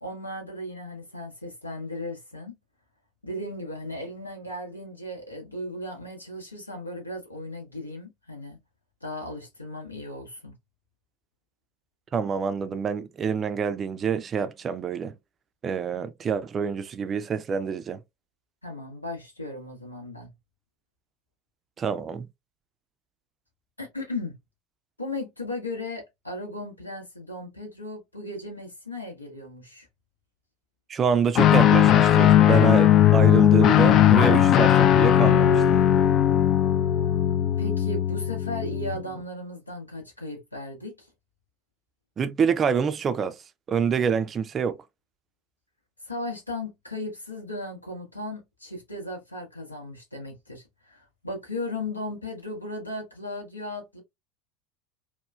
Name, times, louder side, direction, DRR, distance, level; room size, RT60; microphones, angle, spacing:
voice 1, 0.0-2.5 3.2-8.6 9.0-10.5 18.6-20.3 23.8-24.4 25.0-29.9 37.6-41.1 46.0-54.0, left 1 dB, 85° left, 0.9 m, -36 dB
voice 2, 12.1-15.1 15.6-18.0 21.8-22.3 30.9-35.8 42.2-43.4 43.7-44.8, right 6 dB, 30° right, 0.4 m, -26 dB
Guitar, 31.3-39.0, left 11 dB, 40° left, 0.3 m, -18 dB
3.0 x 2.1 x 2.3 m
figure-of-eight pair, 75°, 0 cm